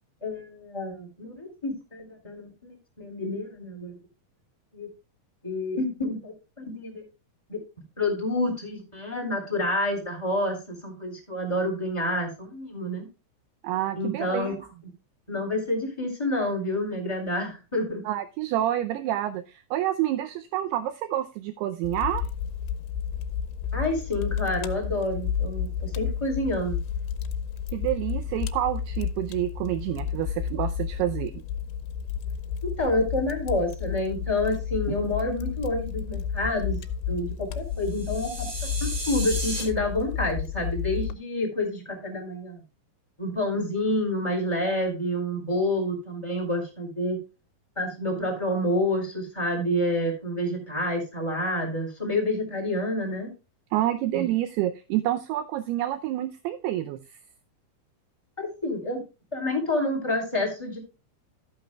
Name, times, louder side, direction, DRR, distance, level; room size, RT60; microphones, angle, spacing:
voice 1, 0.2-4.0 4.7-4.9 5.4-7.0 7.5-7.6 8.0-13.0 14.0-14.6 15.3-18.0 23.7-26.8 32.6-36.8 37.1-38.5 38.8-42.6 43.2-47.2 47.8-53.3 54.1-54.3 58.4-59.0 59.3-60.8, left 1 dB, 5° left, -1 dB, 4.4 m, -28 dB
voice 2, 13.6-14.6 18.1-22.3 27.7-31.3 53.7-57.2, right 13 dB, 85° right, 10 dB, 2.3 m, -28 dB
Fire, 21.8-41.1, left 8 dB, 85° left, 3.0 m, -32 dB
sound 1, 37.8-39.6, right 2 dB, 40° right, 4.3 m, -34 dB
14.0 x 9.4 x 2.3 m, 0.29 s
omnidirectional pair, 5.2 m